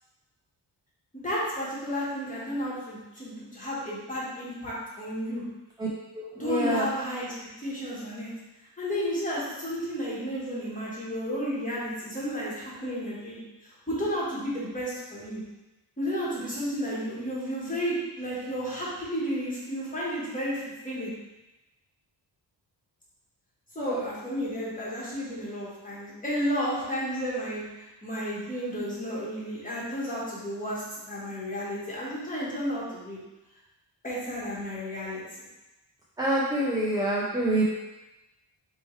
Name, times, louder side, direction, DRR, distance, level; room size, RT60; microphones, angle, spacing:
voice 1, 1.2-5.4 6.4-7.3 7.6-8.3 8.8-13.4 13.9-15.4 16.0-21.1 23.7-33.2 34.0-35.4, equal, 20° left, -7 dB, 1.3 m, -32 dB
voice 2, 6.1-6.9 23.8-24.0 36.2-37.6, right 1 dB, 10° right, -6 dB, 0.4 m, -26 dB
4.4 x 3.1 x 3.1 m, 1.0 s
wide cardioid pair, 165°, 42 cm